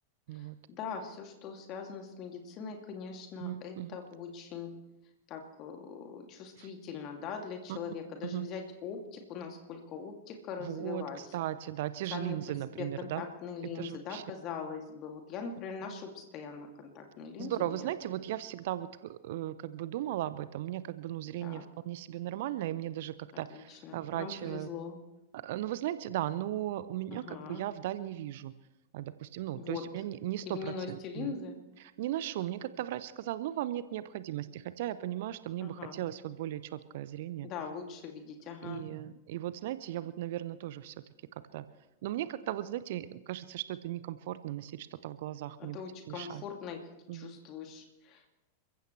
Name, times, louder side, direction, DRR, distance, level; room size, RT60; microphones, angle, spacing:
voice 1, 0.3-4.7 5.3-11.3 12.1-12.4 12.8-17.9 21.4-21.6 23.5-25.0 27.1-27.6 29.6-29.8 30.5-31.5 35.6-36.0 37.4-38.9 45.6-46.8 47.1-48.3, left 6 dB, 35° left, 3 dB, 2.5 m, -41 dB
voice 2, 3.4-4.0 6.6-6.7 7.7-7.8 8.2-8.5 10.6-13.2 13.7-14.2 17.4-24.7 25.3-28.5 28.9-31.3 31.8-37.5 38.6-40.9 41.3-41.6 42.0-45.8 46.1-46.4 47.1-47.4, right 13 dB, 55° right, 15 dB, 0.7 m, -37 dB
29.0 x 15.0 x 3.3 m, 0.99 s
figure-of-eight pair, 90°, 0 cm